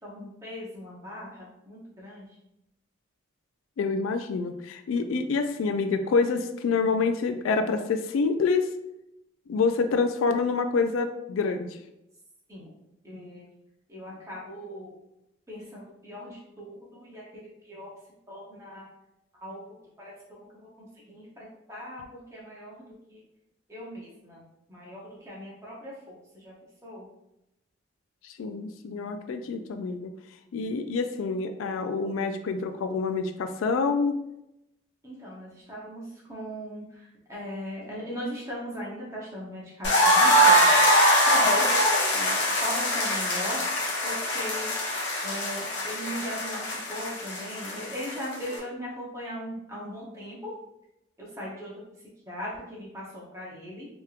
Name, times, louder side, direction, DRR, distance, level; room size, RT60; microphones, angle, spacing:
voice 1, 0.0-2.3 12.5-12.7 13.0-13.4 13.9-14.9 15.5-17.9 18.3-18.9 19.4-19.6 20.0-20.1 20.5-22.0 22.3-23.2 23.7-24.4 24.7-26.5 26.8-27.1 35.0-40.8 41.2-41.7 42.1-43.6 44.0-44.8 45.2-50.5 51.2-51.7 52.3-53.9, equal, 15° right, -5 dB, 0.9 m, -39 dB
voice 2, 3.8-8.7 9.5-11.8 28.2-30.1 30.5-34.2, left 4 dB, 85° left, 7 dB, 0.3 m, -27 dB
sound 1, 39.8-48.6, equal, 60° left, 0.8 m, -23 dB
3.4 x 2.9 x 2.4 m, 0.86 s
head